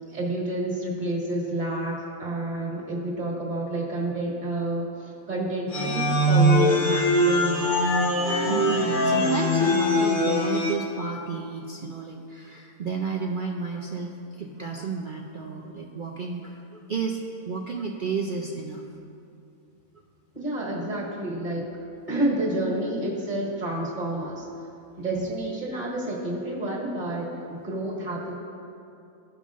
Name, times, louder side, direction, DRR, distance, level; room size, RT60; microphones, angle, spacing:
voice 1, 0.0-7.7 20.3-21.6 22.1-24.5 25.0-28.3, right 1 dB, 35° right, -5 dB, 1.7 m, -29 dB
sound 1, 5.7-10.7, equal, 40° left, 1.3 m, -22 dB
voice 2, 8.4-18.9 25.1-25.3, right 4 dB, 60° right, 0 dB, 0.5 m, -32 dB
15.5 x 5.3 x 2.5 m, 2.7 s
omnidirectional pair, 1.5 m